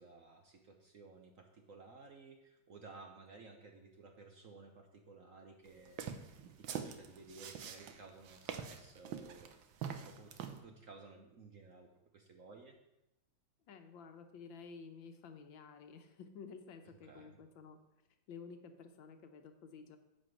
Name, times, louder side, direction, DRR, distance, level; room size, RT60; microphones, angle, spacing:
voice 1, 0.0-6.2 6.6-9.5 10.0-12.8 17.0-17.4, right 3 dB, 55° right, 4 dB, 1.0 m, -56 dB
sound 1, 5.9-10.6, right 8 dB, 75° right, 1.6 m, -44 dB
voice 2, 13.7-17.8 18.3-20.0, left 5 dB, 70° left, 7 dB, 1.6 m, -52 dB
9.9 x 5.2 x 7.6 m, 0.90 s
omnidirectional pair, 2.2 m